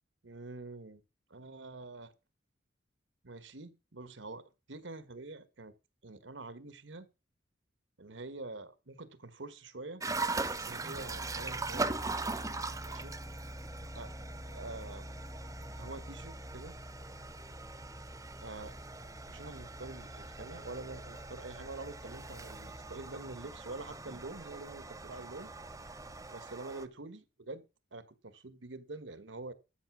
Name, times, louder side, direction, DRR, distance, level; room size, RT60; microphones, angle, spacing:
voice 1, 0.2-1.0 1.3-2.1 3.2-4.4 4.7-5.7 6.0-7.1 8.0-10.0 10.4-12.1 12.8-13.2 13.9-14.1 14.5-15.1 15.8-16.8 18.4-18.7 19.3-25.5 26.3-27.6 27.9-29.5, right 2 dB, 85° right, 1.3 m, -46 dB
sound 1, 10.0-26.9, right 3 dB, 20° right, 0.8 m, -41 dB
sound 2, 10.1-26.3, left 1 dB, 15° left, 0.5 m, -49 dB
13.0 x 6.7 x 6.1 m
head